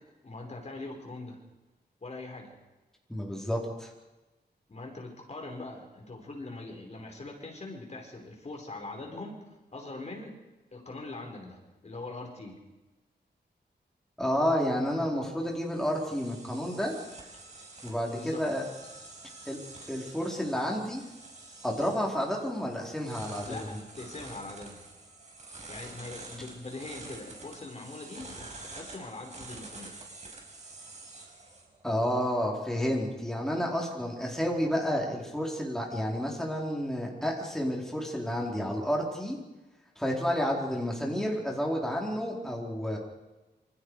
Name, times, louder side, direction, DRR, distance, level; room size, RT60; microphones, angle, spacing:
voice 1, 0.2-1.4 2.0-2.5 4.7-10.4 10.7-12.6 18.1-18.4 23.4-24.9 25.7-30.0, left 2 dB, 40° left, 1 dB, 5.1 m, -42 dB
voice 2, 3.1-3.9 14.2-16.9 17.8-18.6 19.5-19.6 19.9-21.0 21.6-23.8 31.8-39.4 40.0-43.0, equal, 5° left, -2 dB, 4.4 m, -30 dB
sound 1, 15.1-32.3, right 3 dB, 45° right, 5.5 m, -48 dB
27.5 x 27.0 x 5.0 m, 1.1 s
wide cardioid pair, 135°, 17 cm